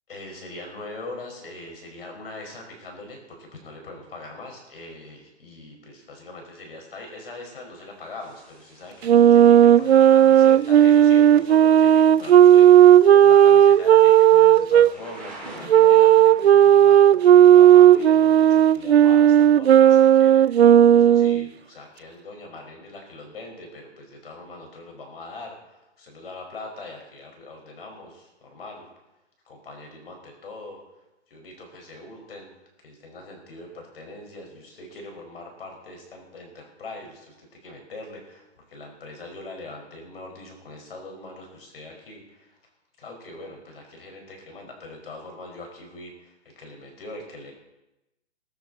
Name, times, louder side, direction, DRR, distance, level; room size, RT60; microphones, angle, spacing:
voice 1, 0.1-28.9 29.5-30.8 31.3-32.5 32.8-42.6 43.0-47.5, left 2 dB, 55° left, 2 dB, 5.3 m, -41 dB
Thunder / Rain, 8.2-18.7, right 2 dB, 5° left, 2.6 m, -48 dB
Wind instrument woodwind instrument, 9.0-14.9 15.7-21.4, right 10 dB, 60° right, 0.5 m, -13 dB
22.0 x 10.5 x 4.1 m, 0.95 s
hypercardioid pair, 175°, 35 cm